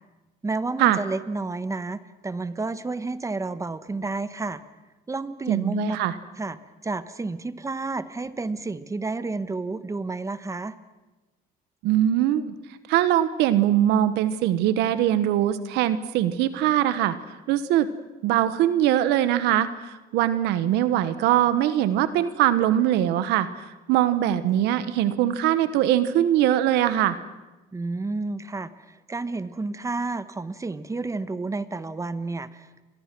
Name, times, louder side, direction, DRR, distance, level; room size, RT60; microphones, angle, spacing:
voice 1, 0.4-4.6 5.1-6.0 6.4-10.7 27.7-32.8, right 3 dB, 20° right, 13 dB, 1.2 m, -30 dB
voice 2, 5.5-6.1 11.8-12.5 12.9-17.2 17.5-17.9 18.2-27.2, right 12 dB, 90° right, 13 dB, 1.2 m, -22 dB
30.0 x 23.5 x 6.1 m, 1.1 s
cardioid pair, 110°, 17 cm